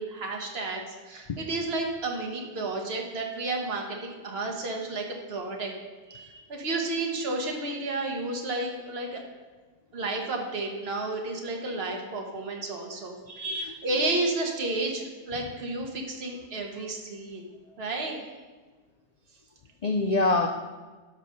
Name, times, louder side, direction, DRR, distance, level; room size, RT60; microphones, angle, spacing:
voice 1, 0.0-5.7 6.5-9.2 9.9-13.4 13.8-18.2, right 2 dB, 55° right, 1 dB, 1.6 m, -32 dB
voice 2, 6.1-6.4 13.3-13.8 19.8-20.5, left 2 dB, 45° left, 5 dB, 0.5 m, -26 dB
12.0 x 4.2 x 6.4 m, 1.3 s
omnidirectional pair, 1.3 m